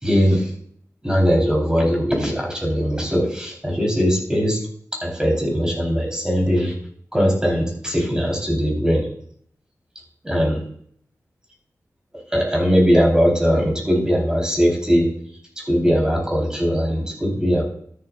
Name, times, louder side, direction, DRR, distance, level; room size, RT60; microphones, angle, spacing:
voice 1, 0.0-0.5 1.0-4.6 5.0-6.7 7.1-9.1 10.2-10.6 12.3-15.1 15.7-17.6, equal, 15° right, -2 dB, 4.1 m, -20 dB
13.0 x 11.0 x 2.5 m, 0.63 s
wide cardioid pair, 100°, 6 cm